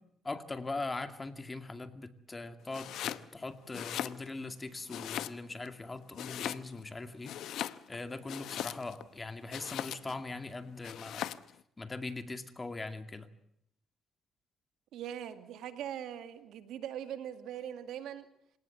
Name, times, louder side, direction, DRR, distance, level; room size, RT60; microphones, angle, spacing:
voice 1, 0.2-7.3 7.9-11.3 11.8-13.3, left 3 dB, 25° left, 9 dB, 2.2 m, -41 dB
Domestic sounds home sounds, 2.7-3.3 3.6-4.5 4.9-5.7 6.1-6.9 7.2-9.0 9.5-10.2 10.8-11.5, left 11 dB, 80° left, 0.9 m, -39 dB
voice 2, 14.9-18.3, right 10 dB, 85° right, 9 dB, 2.3 m, -41 dB
27.0 x 18.0 x 7.9 m, 0.73 s
cardioid pair, 90°, 0 cm